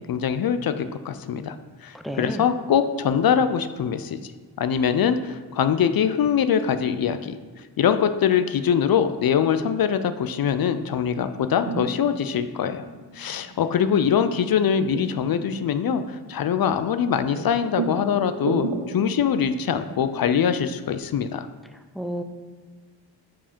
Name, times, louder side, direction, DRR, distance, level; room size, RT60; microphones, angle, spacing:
voice 1, 0.0-1.6 1.8-4.3 4.6-7.4 7.8-12.8 13.1-21.5, left 8 dB, 55° left, 11 dB, 0.5 m, -23 dB
voice 2, 2.0-2.5 21.9-22.2, equal, ahead, 7 dB, 0.5 m, -30 dB
sound 1, 11.3-21.0, right 4 dB, 80° right, 0.8 m, -36 dB
5.0 x 4.7 x 5.2 m, 1.5 s
cardioid pair, 60°, 44 cm